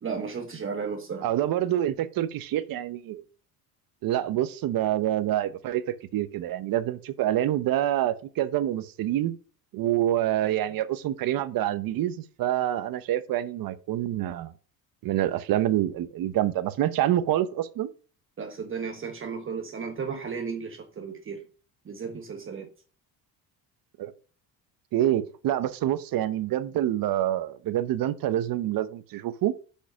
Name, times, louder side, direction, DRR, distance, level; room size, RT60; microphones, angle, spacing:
voice 1, 0.0-1.3 18.4-21.4 21.8-22.7, right 5 dB, 35° right, 1.4 m, -34 dB
voice 2, 1.2-3.2 4.0-9.4 9.7-14.5 15.0-17.9 24.0-24.1 24.9-29.5, right 12 dB, 65° right, 1.0 m, -27 dB
6.7 x 5.4 x 5.7 m
cardioid pair, 110°, 38 cm